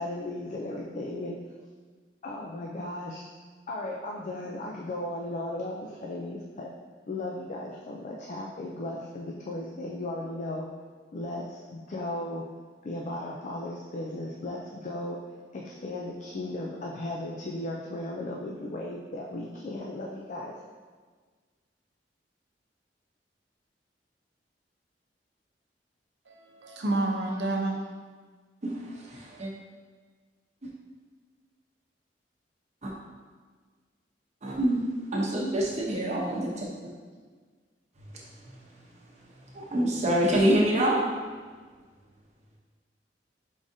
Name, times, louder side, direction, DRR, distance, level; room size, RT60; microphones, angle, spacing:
voice 1, 0.0-1.4 2.2-3.2 3.7-6.7 7.1-10.7 11.1-12.4 12.8-15.2 15.5-20.5, left 1 dB, 45° left, -2 dB, 0.4 m, -36 dB
voice 2, 26.3-27.9, right 2 dB, 90° right, 0 dB, 0.7 m, -29 dB
voice 3, 28.6-29.5 32.8-32.9 34.4-36.7 38.4-38.5 39.5-41.0, right 1 dB, 40° right, -3 dB, 0.8 m, -26 dB
4.8 x 3.6 x 2.7 m, 1.5 s
head